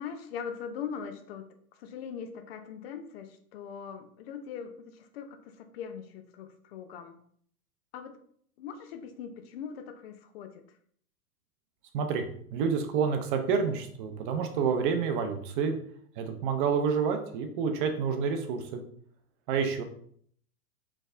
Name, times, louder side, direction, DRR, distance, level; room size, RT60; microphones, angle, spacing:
voice 1, 0.0-1.5 1.7-7.2 7.9-8.2 8.6-10.6, left 7 dB, 45° left, 7 dB, 0.5 m, -41 dB
voice 2, 12.5-15.8 16.2-18.8 19.5-19.8, right 6 dB, 35° right, 6 dB, 0.5 m, -28 dB
4.0 x 3.4 x 2.4 m, 0.62 s
hypercardioid pair, 110°, 45 cm